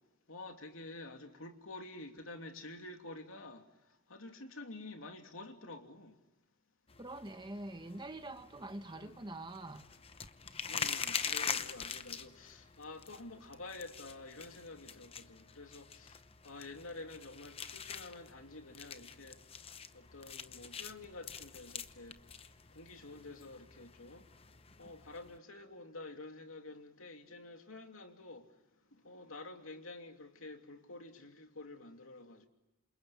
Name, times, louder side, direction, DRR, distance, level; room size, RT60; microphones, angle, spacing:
voice 1, 0.3-3.7 4.1-6.2 8.9-9.2 10.7-16.2 16.4-19.4 19.9-22.2 22.7-24.3 24.8-28.5 28.9-32.5, left 2 dB, 70° left, 3.0 m, -49 dB
sound 1, 6.9-25.4, left 6 dB, 25° left, 0.8 m, -44 dB
voice 2, 7.0-9.9, right 2 dB, 20° right, 1.2 m, -45 dB
28.0 x 28.0 x 7.2 m
head